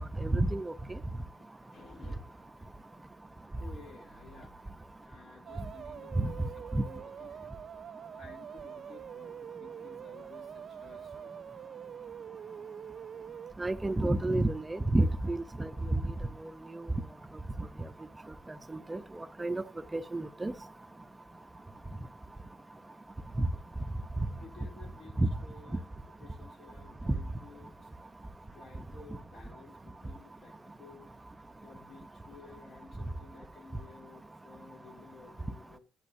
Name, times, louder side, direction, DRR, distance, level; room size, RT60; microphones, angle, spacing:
voice 1, 0.2-0.7 6.2-6.3 6.7-6.8 13.6-16.0 16.8-16.9 18.9-19.0 19.4-19.6 19.9-20.5 23.4-23.5 25.2-25.3 27.1-27.2, right 2 dB, 15° right, 0.6 m, -29 dB
voice 2, 1.7-2.4 3.6-4.5 5.0-6.5 6.7-7.5 8.1-9.3 9.6-11.5 24.4-25.1 25.4-25.8 26.2-27.9 28.5-31.0 31.6-35.8, left 4 dB, 60° left, 3.2 m, -54 dB
sound 1, 5.5-13.5, right 8 dB, 60° right, 0.4 m, -45 dB
10.5 x 7.3 x 2.6 m
cardioid pair, 90°, 0 cm